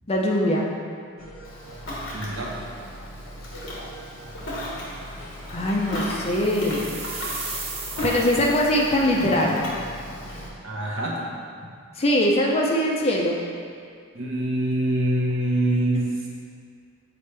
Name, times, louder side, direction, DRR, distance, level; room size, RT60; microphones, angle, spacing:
voice 1, 0.1-0.7 5.1-5.2 5.5-7.0 8.0-9.6 11.9-13.4, left 1 dB, 25° left, -1 dB, 0.5 m, -22 dB
sound 1, 1.2-10.6, equal, 75° left, 1.0 m, -41 dB
Ocean, 1.4-10.5, equal, 55° left, 1.2 m, -35 dB
voice 2, 2.1-2.6 10.6-11.2 14.1-16.3, right 1 dB, 60° right, -4 dB, 1.0 m, -25 dB
sound 2, 6.2-9.2, right 3 dB, 25° right, 0.6 m, -36 dB
6.8 x 4.4 x 3.3 m, 2.2 s
head